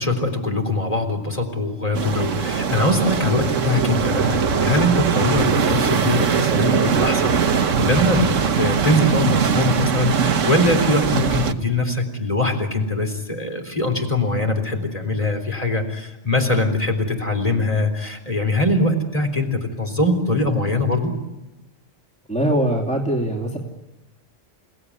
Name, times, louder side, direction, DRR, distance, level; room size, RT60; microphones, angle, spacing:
voice 1, 0.0-21.1, left 2 dB, 30° left, 4 dB, 3.9 m, -22 dB
sound 1, 1.9-11.5, right 6 dB, 80° right, 1.5 m, -21 dB
voice 2, 22.3-23.6, right 1 dB, 5° left, 0 dB, 2.8 m, -22 dB
29.5 x 18.0 x 9.8 m, 1.0 s
omnidirectional pair, 1.3 m